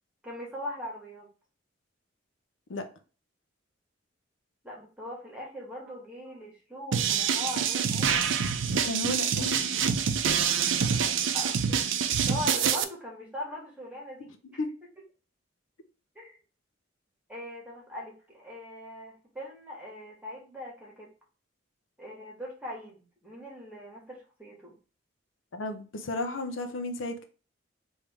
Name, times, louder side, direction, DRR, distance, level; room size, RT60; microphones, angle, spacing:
voice 1, 0.2-1.3 4.6-8.3 11.3-11.9 12.3-14.6 16.1-16.4 17.3-21.1 22.0-24.7, left 1 dB, 5° right, -2 dB, 1.5 m, -41 dB
sound 1, 6.9-12.8, right 7 dB, 70° right, 0.5 m, -26 dB
voice 2, 8.7-9.9 14.6-14.7 25.5-27.2, left 2 dB, 75° left, 7 dB, 0.6 m, -34 dB
3.5 x 2.7 x 4.6 m, 0.36 s
head